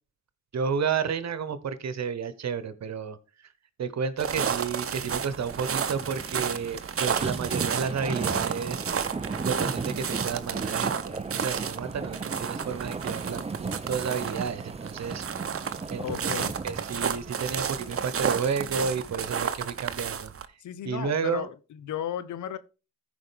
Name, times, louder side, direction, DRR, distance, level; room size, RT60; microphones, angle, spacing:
voice 1, 0.5-3.2 3.8-8.8 9.4-15.2 15.9-16.3 16.6-20.3 20.8-21.5, right 6 dB, 65° right, 1.2 m, -31 dB
sound 1, 4.2-20.5, right 7 dB, 50° right, 0.9 m, -32 dB
sound 2, 4.9-19.3 19.8-19.9, right 4 dB, 20° right, 0.7 m, -37 dB
voice 2, 16.0-16.5 20.6-22.6, left 10 dB, 85° left, 0.8 m, -35 dB
14.5 x 5.1 x 3.5 m
supercardioid pair, 50°, 29 cm